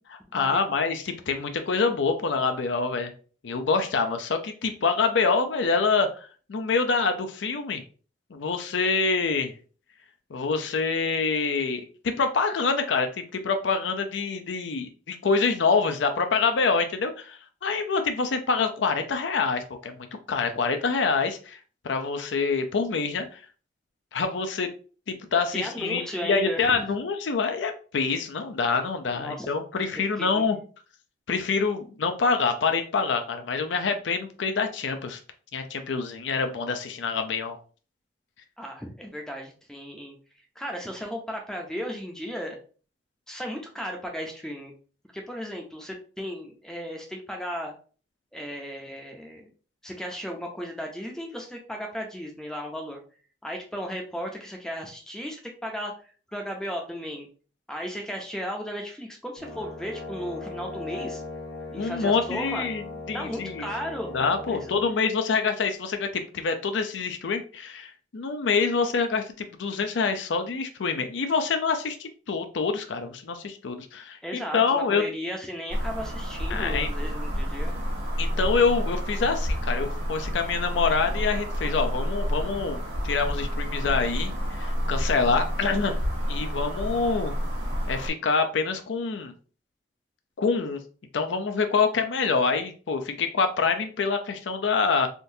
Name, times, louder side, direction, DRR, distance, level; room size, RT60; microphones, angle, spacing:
voice 1, 0.3-3.1 3.4-7.8 8.3-9.5 10.3-21.6 21.8-23.4 24.1-24.7 25.1-30.6 31.3-35.2 35.5-37.6 61.8-62.8 63.1-63.7 64.1-75.0 76.5-76.9 78.2-86.0 86.3-87.3 87.9-89.3 90.4-90.8 91.1-95.1, left 4 dB, 85° left, 6 dB, 0.5 m, -26 dB
voice 2, 25.5-26.7 29.1-29.5 29.9-30.5 38.6-40.2 40.6-42.6 43.3-44.7 45.1-47.7 48.3-49.5 49.8-53.0 53.4-55.9 56.3-57.3 57.7-61.2 61.7-62.7 63.1-64.1 64.5-64.7 74.2-77.7, equal, 5° left, 1 dB, 0.5 m, -35 dB
Brass instrument, 59.4-64.9, left 3 dB, 70° left, 0.8 m, -38 dB
sound 1, 75.7-88.1, equal, 75° right, 1.0 m, -29 dB
3.7 x 2.6 x 2.6 m, 0.39 s
head